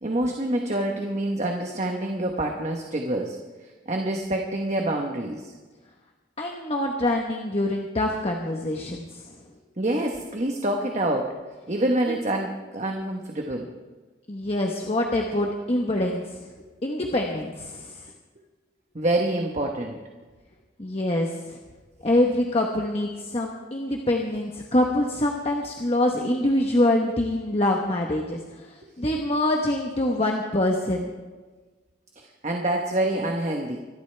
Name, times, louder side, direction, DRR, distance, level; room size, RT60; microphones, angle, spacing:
voice 1, 0.0-3.4 3.9-5.5 9.8-11.3 11.7-13.7 18.9-20.0 32.2-33.8, right 1 dB, 35° right, 2 dB, 1.1 m, -26 dB
voice 2, 6.4-9.4 12.1-12.2 14.3-16.5 16.8-18.1 20.8-21.6 22.0-31.1, left 1 dB, 30° left, 1 dB, 1.1 m, -25 dB
24.5 x 12.0 x 3.4 m, 1.3 s
head